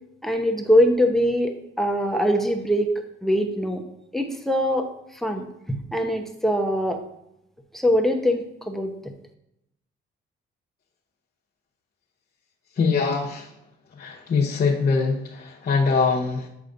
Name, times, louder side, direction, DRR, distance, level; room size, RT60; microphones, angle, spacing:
voice 1, 0.2-2.9 3.2-3.8 4.1-4.9 5.1-7.0 7.7-8.9, equal, ahead, 4 dB, 0.9 m, -22 dB
voice 2, 12.8-13.5 14.0-16.5, left 4 dB, 50° left, -5 dB, 1.0 m, -23 dB
8.3 x 6.3 x 2.6 m, 0.82 s
cardioid pair, 90°, 20 cm